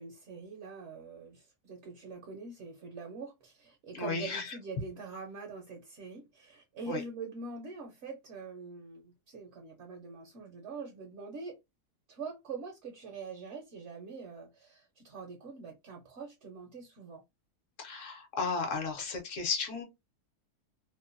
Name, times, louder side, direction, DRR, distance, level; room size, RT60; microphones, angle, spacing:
voice 1, 0.0-11.6 12.1-17.2, right 4 dB, 60° right, 0.8 m, -44 dB
voice 2, 3.9-4.5 6.9-7.0 17.8-19.8, left 4 dB, 60° left, 1.0 m, -34 dB
2.8 x 2.1 x 2.5 m
omnidirectional pair, 1.7 m